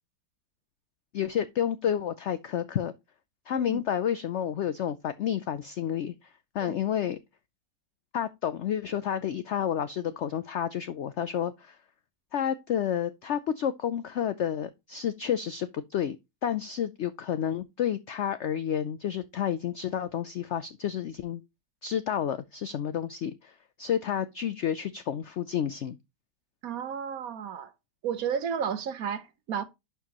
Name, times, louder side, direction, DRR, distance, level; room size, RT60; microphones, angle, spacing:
voice 1, 1.1-2.9 3.5-6.3 6.5-7.2 8.1-11.8 12.3-16.2 16.4-21.4 21.8-26.0, left 9 dB, 85° left, 0.6 m, -30 dB
voice 2, 26.6-27.7 28.0-29.6, right 7 dB, 60° right, 1.2 m, -32 dB
11.0 x 4.7 x 2.9 m
omnidirectional pair, 1.8 m